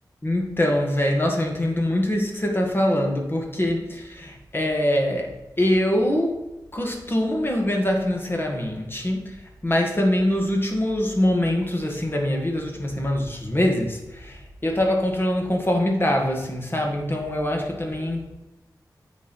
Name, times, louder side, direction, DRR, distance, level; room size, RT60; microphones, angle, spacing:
voice 1, 0.2-5.3 5.6-6.4 6.7-9.4 9.6-18.3, left 1 dB, 30° left, 1 dB, 1.9 m, -23 dB
8.2 x 4.6 x 5.6 m, 1.0 s
wide cardioid pair, 65°, 8 cm